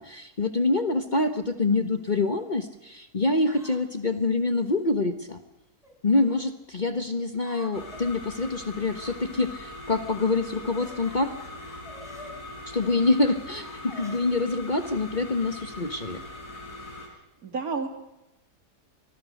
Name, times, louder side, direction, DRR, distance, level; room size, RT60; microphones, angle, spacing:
voice 1, 0.0-5.4 6.0-11.4 12.7-16.2, left 3 dB, 30° left, 8 dB, 1.3 m, -26 dB
sound 1, 0.8-1.1 1.9-2.4 3.5-4.8 5.8-6.4 7.4-8.0 8.9-9.5 9.8-12.3 12.7-12.9 13.5-16.9, equal, ahead, 5.3 m, -51 dB
sound 2, 7.7-17.1, left 2 dB, 60° left, 5.2 m, -41 dB
voice 2, 17.0-17.9, right 4 dB, 65° right, 5 dB, 3.0 m, -32 dB
26.0 x 20.5 x 6.6 m, 0.93 s
omnidirectional pair, 1.7 m